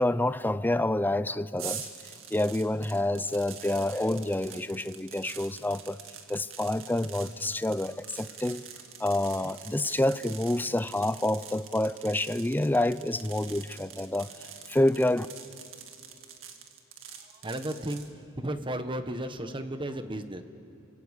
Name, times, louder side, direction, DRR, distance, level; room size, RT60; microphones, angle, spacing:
voice 1, 0.0-1.9 2.3-6.0 6.3-8.6 9.0-14.3 14.7-15.3, left 1 dB, 10° left, 0.5 m, -28 dB
sound 1, 1.6-18.1, right 8 dB, 75° right, 2.1 m, -45 dB
voice 2, 17.4-18.1 18.4-20.4, right 1 dB, 25° right, 1.3 m, -34 dB
29.0 x 25.0 x 8.3 m
head